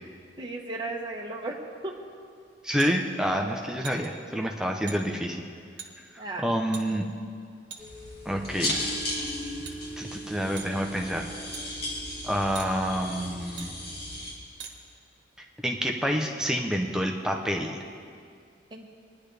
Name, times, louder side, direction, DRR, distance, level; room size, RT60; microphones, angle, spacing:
voice 1, 0.4-2.0 4.0-4.5 6.2-6.5 18.7-18.9, right 2 dB, 20° right, 0 dB, 1.1 m, -36 dB
voice 2, 2.6-5.5 6.4-7.1 8.2-8.9 10.0-11.3 12.2-13.7 15.6-17.8, equal, 5° right, 2 dB, 0.6 m, -28 dB
sound 1, 2.8-2.9 3.8-4.1 4.9-5.0 5.8-5.9 6.7-6.8 7.7-8.1 8.6-9.0 9.6-9.8 10.6-10.7 11.5-11.6 12.5-12.7 13.6-13.7 14.6-14.7, right 7 dB, 60° right, 1.2 m, -41 dB
sound 2, 7.8-14.3, left 1 dB, 50° left, 2.5 m, -35 dB
20.0 x 10.5 x 3.4 m, 2.3 s
head